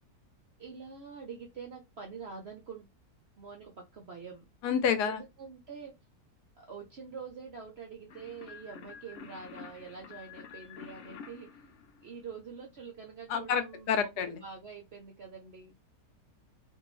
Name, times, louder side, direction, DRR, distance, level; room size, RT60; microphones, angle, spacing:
voice 1, 0.6-2.9 3.4-4.5 5.0-5.9 6.5-11.6 12.0-15.7, right 5 dB, 60° right, 0.6 m, -45 dB
voice 2, 4.6-5.2 13.3-14.4, left 7 dB, 75° left, 1.2 m, -29 dB
sound 1, 8.1-12.6, left 6 dB, 60° left, 0.8 m, -49 dB
2.6 x 2.6 x 3.0 m
omnidirectional pair, 1.8 m